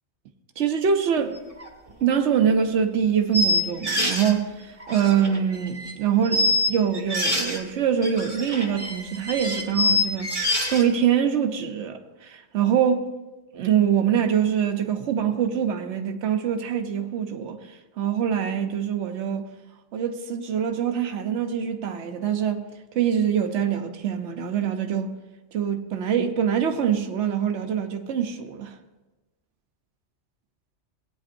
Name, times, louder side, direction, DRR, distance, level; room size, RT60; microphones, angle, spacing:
voice 1, 0.6-1.4 2.0-10.3 10.7-13.1 13.5-17.6 18.0-19.4 19.9-22.7 22.9-25.1 25.5-28.8, right 8 dB, 80° right, 1.1 m, -24 dB
sound 1, 1.6-1.7 2.1-2.2 3.3-4.3 4.8-5.9 6.2-7.6 8.0-10.9, left 2 dB, 30° right, 1.5 m, -25 dB
17.5 x 9.1 x 2.6 m
omnidirectional pair, 1.2 m